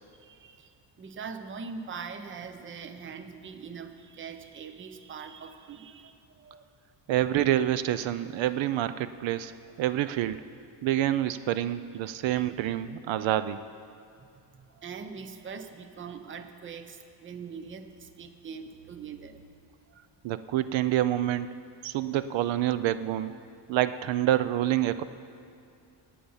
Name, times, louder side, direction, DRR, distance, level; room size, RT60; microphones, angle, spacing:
voice 1, 0.2-6.7 10.1-10.2 12.3-12.5 14.2-19.4 19.9-20.0, right 5 dB, 25° right, 8 dB, 0.6 m, -42 dB
voice 2, 7.1-9.5 9.8-10.4 10.8-13.6 20.2-21.5 21.8-23.3 23.7-25.1, right 12 dB, 80° right, 13 dB, 0.6 m, -27 dB
18.0 x 8.6 x 5.6 m, 2.5 s
cardioid pair, 170°, 45 cm